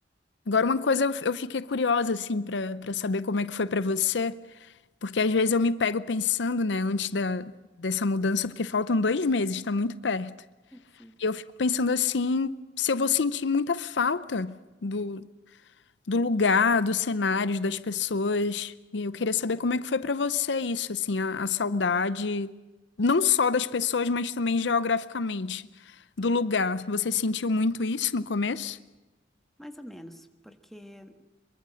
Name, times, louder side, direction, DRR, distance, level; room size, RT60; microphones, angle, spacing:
voice 1, 0.5-4.4 5.0-7.5 7.8-10.3 11.2-14.6 14.8-15.3 16.1-22.5 23.0-28.8, left 4 dB, 70° left, 0.7 m, -26 dB
voice 2, 10.7-11.1 29.6-31.2, equal, ahead, 1.5 m, -46 dB
24.5 x 23.0 x 6.4 m
head